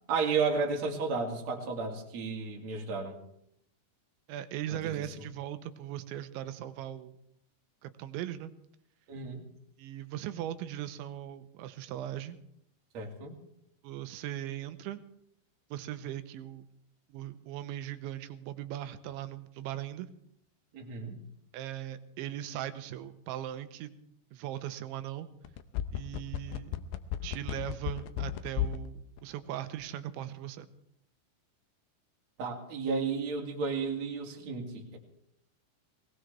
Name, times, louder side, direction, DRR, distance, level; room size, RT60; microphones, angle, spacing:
voice 1, 0.1-3.2 4.7-5.0 9.1-9.4 12.9-13.3 20.7-21.2 32.4-35.0, right 4 dB, 45° right, 0 dB, 3.1 m, -33 dB
voice 2, 4.3-7.2 7.8-8.5 9.8-12.4 13.8-15.0 15.7-16.7 17.1-20.1 21.5-24.0 24.3-25.3 25.9-26.7 27.2-30.7, right 12 dB, 90° right, 11 dB, 3.2 m, -39 dB
sound 1, 25.4-28.9 29.2-29.3, left 12 dB, 75° left, 2.5 m, -33 dB
20.5 x 19.5 x 3.4 m, 0.74 s
omnidirectional pair, 5.3 m